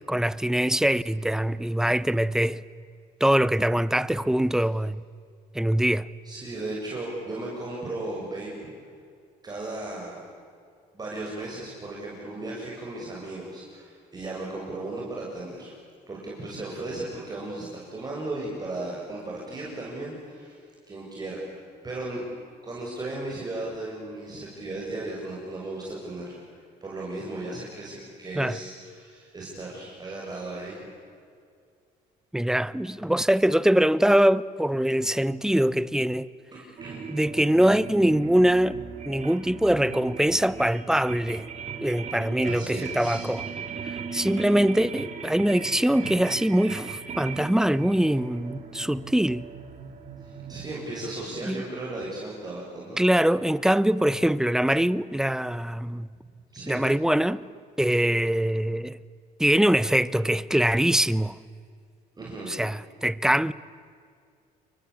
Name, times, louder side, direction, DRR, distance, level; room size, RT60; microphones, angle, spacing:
voice 1, 0.1-2.6 3.2-5.0 5.5-6.1 28.4-28.6 32.3-36.3 37.1-38.8 39.0-41.4 41.8-43.4 44.1-49.4 51.4-51.6 53.0-56.1 56.7-57.4 57.8-59.0 59.4-61.4 62.5-63.5, right 1 dB, 5° right, 0.8 m, -23 dB
voice 2, 6.2-8.5 9.4-10.2 10.9-15.7 16.1-20.6 20.9-21.6 21.8-22.2 22.6-30.8 36.5-37.1 42.4-43.3 50.2-53.0 56.5-56.8 62.1-62.5, right 2 dB, 25° right, 7.4 m, -36 dB
sound 1, 36.8-50.7, right 6 dB, 40° right, 4.2 m, -38 dB
29.5 x 23.5 x 8.6 m
cardioid pair, 110°, 17 cm